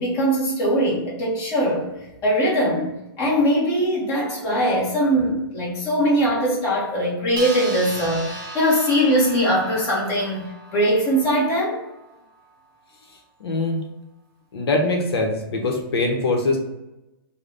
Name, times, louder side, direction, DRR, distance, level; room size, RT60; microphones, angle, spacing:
voice 1, 0.0-1.9 2.2-10.5 10.7-11.8, equal, 25° left, -5 dB, 1.3 m, -21 dB
sound 1, 7.4-12.2, right 2 dB, 30° right, 0.6 m, -37 dB
voice 2, 13.4-13.8 14.5-16.6, left 2 dB, 80° left, 2 dB, 0.9 m, -22 dB
3.2 x 2.3 x 3.9 m, 0.94 s
hypercardioid pair, 150°, 13 cm